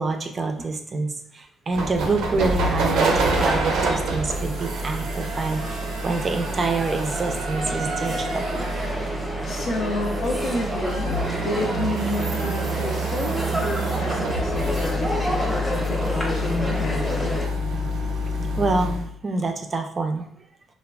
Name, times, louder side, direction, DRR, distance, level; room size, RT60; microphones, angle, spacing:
voice 1, 0.0-8.4 18.6-20.3, right 3 dB, 35° right, 5 dB, 0.4 m, -27 dB
sound 1, 1.7-19.1, right 1 dB, 90° right, 0.5 m, -27 dB
sound 2, 3.2-17.5, equal, ahead, 0.8 m, -31 dB
voice 2, 9.4-11.2 11.4-17.4, left 2 dB, 65° left, 1 dB, 0.5 m, -30 dB
3.1 x 2.3 x 2.2 m, 0.64 s
cardioid pair, 110°, 0 cm